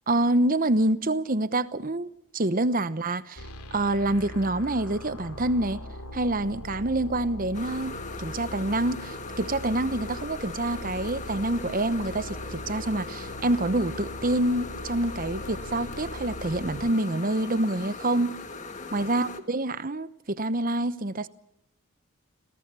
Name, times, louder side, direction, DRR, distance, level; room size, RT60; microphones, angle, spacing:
voice 1, 0.1-5.8 6.1-7.9 8.2-18.3 18.9-21.3, right 1 dB, 40° right, 0.9 m, -27 dB
sound 1, 3.4-16.9, equal, 85° left, 2.7 m, -40 dB
sound 2, 7.5-19.4, left 4 dB, 35° left, 1.7 m, -39 dB
26.0 x 17.5 x 6.9 m
head